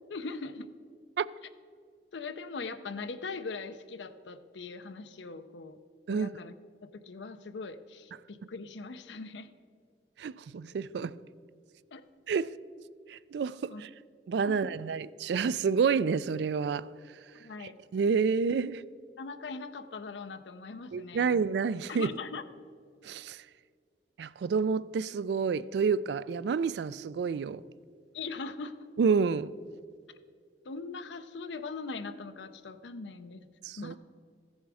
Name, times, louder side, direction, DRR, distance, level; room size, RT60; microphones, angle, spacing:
voice 1, 0.1-0.7 2.1-5.8 6.1-6.5 6.8-9.5 11.0-11.1 11.9-12.0 13.7-13.9 14.6-14.7 17.4-17.8 19.2-21.4 21.9-22.4 28.1-28.7 30.1-30.2 30.6-33.4 33.8-34.0, left 4 dB, 85° left, 0.6 m, -41 dB
voice 2, 10.2-11.1 12.3-12.5 13.1-13.9 14.3-16.9 17.6-18.8 20.9-22.1 23.0-23.4 24.2-27.6 29.0-29.5 33.6-33.9, right 5 dB, 70° right, 0.3 m, -29 dB
15.0 x 7.2 x 4.8 m
head